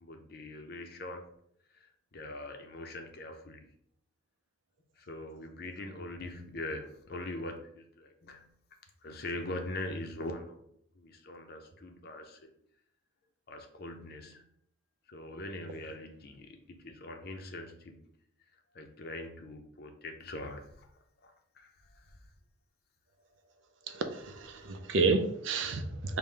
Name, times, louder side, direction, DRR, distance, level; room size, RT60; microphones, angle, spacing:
voice 1, 0.0-1.2 2.1-3.6 5.1-8.4 9.0-10.6 11.0-12.4 13.5-14.4 15.1-18.0 18.7-20.6 21.6-21.7, left 2 dB, 50° left, 4 dB, 0.6 m, -42 dB
voice 2, 23.9-26.2, right 4 dB, 65° right, 7 dB, 0.5 m, -30 dB
5.5 x 2.2 x 3.3 m, 0.70 s
head